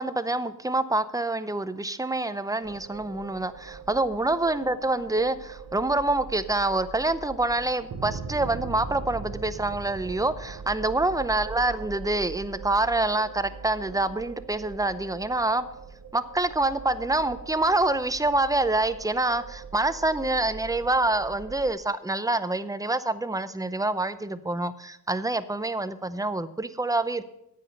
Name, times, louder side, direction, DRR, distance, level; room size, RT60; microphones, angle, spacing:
voice 1, 0.0-15.6 16.1-27.2, right 2 dB, 10° right, 13 dB, 0.6 m, -26 dB
sound 1, 2.6-21.7, right 5 dB, 75° right, 1.1 m, -41 dB
9.9 x 8.4 x 6.4 m, 0.81 s
wide cardioid pair, 80°, 32 cm